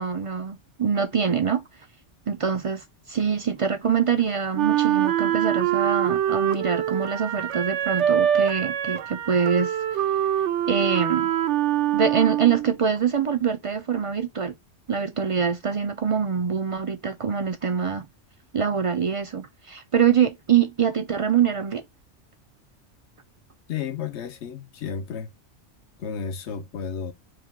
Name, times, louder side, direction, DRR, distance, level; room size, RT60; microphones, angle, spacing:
voice 1, 0.0-1.6 2.3-10.0 10.7-11.3 11.9-14.5 14.9-18.1 18.5-21.8, right 7 dB, 55° right, 0.3 m, -24 dB
Wind instrument woodwind instrument, 4.6-12.7, right 11 dB, 75° right, 0.9 m, -24 dB
voice 2, 23.7-25.3 26.0-27.1, left 7 dB, 70° left, 1.1 m, -32 dB
4.9 x 2.3 x 3.6 m
omnidirectional pair, 1.2 m